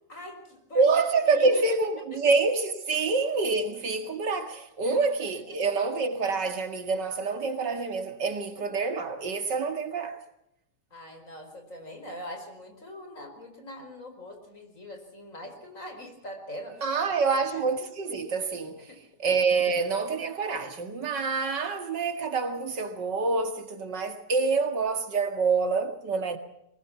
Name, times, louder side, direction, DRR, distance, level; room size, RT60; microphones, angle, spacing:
voice 1, 0.1-0.9 1.2-1.6 4.8-5.0 10.9-17.0 17.3-17.4 18.9-19.0, left 1 dB, 45° left, 5.2 m, -42 dB
voice 2, 0.7-10.2 16.8-18.9 19.2-26.4, right 4 dB, 85° right, 2.7 m, -27 dB
23.5 x 20.5 x 6.0 m
omnidirectional pair, 1.8 m